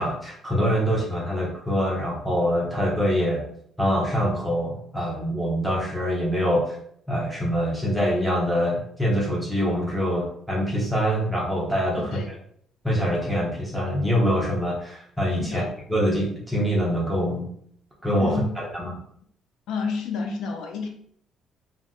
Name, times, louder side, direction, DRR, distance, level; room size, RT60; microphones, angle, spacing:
voice 1, 0.0-3.4 3.8-6.8 7.1-12.1 12.8-17.5 18.0-19.0, equal, 5° right, -4 dB, 0.8 m, -24 dB
voice 2, 18.2-18.5 19.7-20.9, left 5 dB, 75° left, 2 dB, 0.5 m, -30 dB
2.5 x 2.1 x 3.6 m, 0.64 s
cardioid pair, 125°, 0 cm